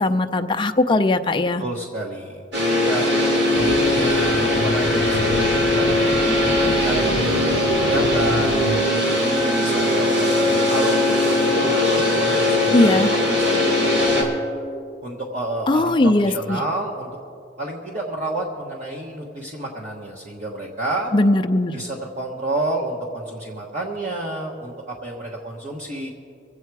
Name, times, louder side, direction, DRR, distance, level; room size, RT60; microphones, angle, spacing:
voice 1, 0.0-1.6 12.7-13.1 15.7-16.6 21.1-21.8, left 2 dB, 25° left, 7 dB, 0.5 m, -19 dB
voice 2, 1.6-2.4 2.8-3.0 3.6-8.6 9.2-14.4 15.0-17.1 17.6-21.1 21.7-26.1, right 1 dB, 40° right, -3 dB, 1.2 m, -29 dB
sound 1, 2.5-14.2, left 1 dB, 70° right, 3.3 m, -20 dB
sound 2, 3.5-8.9, left 3 dB, 85° left, 0.6 m, -28 dB
24.0 x 8.3 x 4.7 m, 2.5 s
head